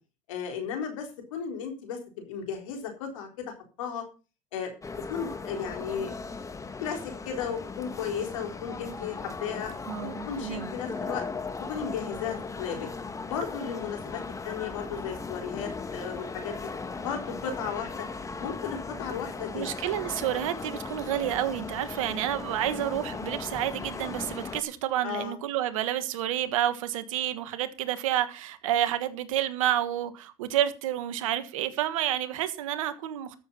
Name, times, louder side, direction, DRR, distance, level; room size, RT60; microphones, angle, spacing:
voice 1, 0.3-4.0 4.5-4.7 5.1-6.1 6.8-9.7 10.0-11.2 11.7-12.9 13.3-16.7 17.0-18.1 18.4-19.6 25.0-25.4, left 7 dB, 85° left, 3 dB, 3.9 m, -35 dB
sound 1, 4.8-24.6, left 4 dB, 20° left, 1.5 m, -38 dB
voice 2, 9.9-10.7 19.5-33.4, right 12 dB, 85° right, 12 dB, 1.5 m, -29 dB
13.0 x 7.2 x 5.6 m, 0.34 s
hypercardioid pair, 85°, 17 cm